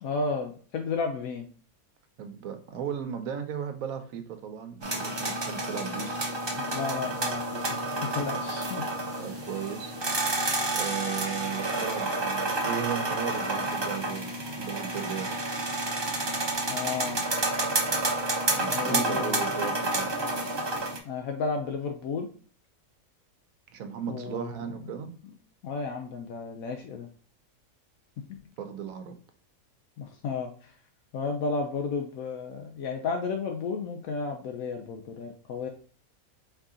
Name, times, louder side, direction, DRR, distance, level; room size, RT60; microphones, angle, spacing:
voice 1, 0.0-1.5 6.6-9.2 16.7-17.2 18.7-19.8 21.0-22.3 24.1-24.5 24.9-25.0 25.6-27.1 30.0-30.7 31.1-35.7, left 4 dB, 80° left, 3 dB, 1.1 m, -33 dB
voice 2, 2.2-6.2 9.2-9.9 10.7-15.3 18.6-20.1 23.7-25.1 28.6-29.2, right 8 dB, 75° right, 8 dB, 1.1 m, -36 dB
sound 1, 4.8-21.0, right 2 dB, 25° right, 0.6 m, -30 dB
4.6 x 2.8 x 3.6 m, 0.42 s
omnidirectional pair, 1.5 m